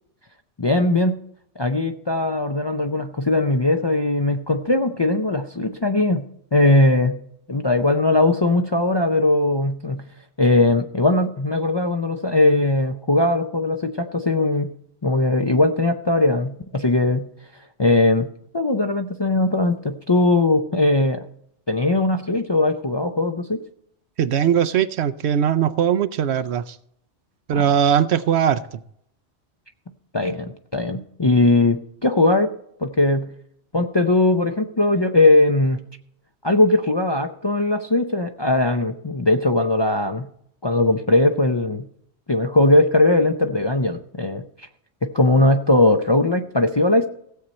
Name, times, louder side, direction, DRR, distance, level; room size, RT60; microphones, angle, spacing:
voice 1, 0.6-1.2 1.6-6.2 6.5-7.2 7.5-10.0 10.4-14.7 15.0-17.3 17.8-18.3 18.5-21.2 21.7-23.6 27.5-27.7 30.1-32.5 32.8-33.3 33.7-35.8 36.4-40.3 40.6-41.9 42.3-44.4 45.0-47.1, left 2 dB, 35° left, 5 dB, 0.4 m, -19 dB
voice 2, 24.2-26.8 27.5-28.8, right 8 dB, 75° right, 14 dB, 0.9 m, -20 dB
16.0 x 7.6 x 4.2 m, 0.70 s
omnidirectional pair, 1.2 m